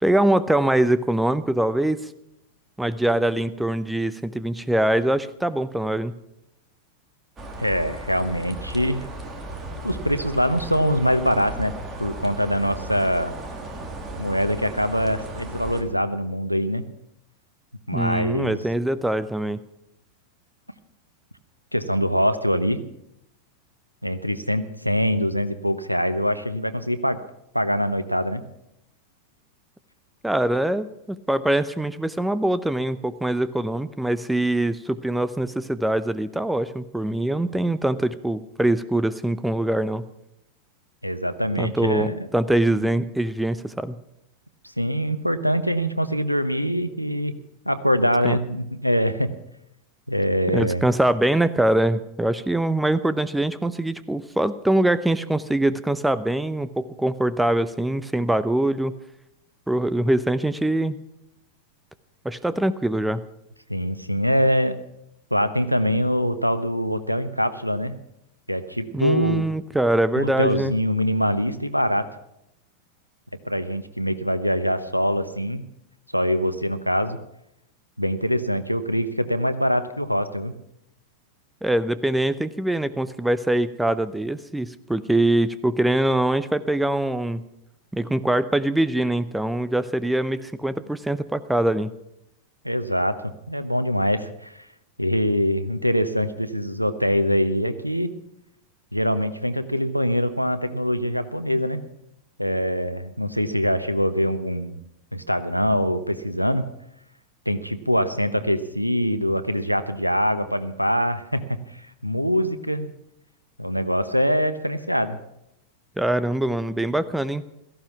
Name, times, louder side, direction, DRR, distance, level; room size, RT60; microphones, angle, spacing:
voice 1, 0.0-2.0 2.8-6.1 17.9-19.6 30.2-40.0 41.6-44.0 48.2-48.4 50.5-58.9 59.7-61.0 62.2-63.2 68.9-70.7 81.6-87.4 87.9-91.9 116.0-117.4, right 1 dB, 5° right, 15 dB, 0.7 m, -23 dB
sound 1, 7.4-15.8, right 1 dB, 20° right, 3.1 m, -36 dB
voice 2, 7.6-9.0 9.8-11.7 12.0-13.4 14.2-16.8 17.9-18.6 21.7-22.8 24.0-27.2 27.5-28.4 41.0-42.2 44.8-47.3 47.6-49.3 50.1-50.8 63.7-64.7 65.3-67.9 68.5-69.4 70.2-72.1 73.4-75.6 76.1-77.2 78.0-80.5 92.6-93.2 93.5-94.7 95.0-98.1 98.9-101.8 102.4-104.8 105.1-106.7 107.5-111.4 112.0-112.9 113.6-115.2, equal, 90° right, 11 dB, 1.0 m, -23 dB
17.0 x 14.5 x 5.8 m, 0.81 s
figure-of-eight pair, 90°, 0 cm